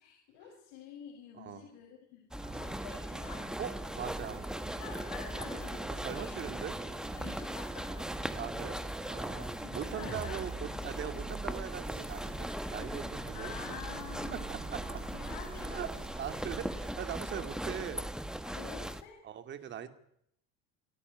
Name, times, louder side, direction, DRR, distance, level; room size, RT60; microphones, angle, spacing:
voice 1, 0.0-3.5 4.8-6.4 7.2-8.2 8.5-8.8 9.4-10.5 13.3-14.5 14.9-16.1 16.6-16.7 17.3-17.5 18.5-19.2 19.6-19.9, left 8 dB, 85° left, 1 dB, 7.0 m, -48 dB
voice 2, 1.4-1.7 2.5-2.7 3.6-4.5 6.0-6.7 8.3-13.8 14.3-15.0 15.7-15.9 16.2-18.1 19.2-19.9, right 9 dB, 40° right, 9 dB, 2.5 m, -41 dB
sound 1, 2.3-19.0, right 1 dB, ahead, 1.4 m, -39 dB
sound 2, 2.4-17.0, right 3 dB, 20° right, 7.6 m, -47 dB
29.5 x 13.5 x 9.7 m, 0.74 s
cardioid pair, 155°, 29 cm